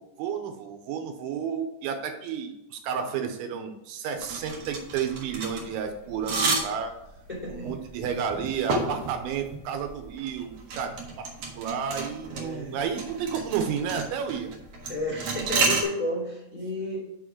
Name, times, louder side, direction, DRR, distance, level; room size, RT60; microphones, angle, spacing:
voice 1, 0.0-6.9 7.5-10.9 11.2-11.3 11.6-14.5, right 7 dB, 85° right, 6 dB, 3.1 m, -31 dB
sound 1, 4.2-15.8, right 3 dB, 70° right, 1.7 m, -31 dB
voice 2, 7.3-7.7 12.3-12.8 14.9-17.0, left 1 dB, 15° left, -6 dB, 1.4 m, -32 dB
6.6 x 4.8 x 5.9 m, 0.89 s
omnidirectional pair, 5.5 m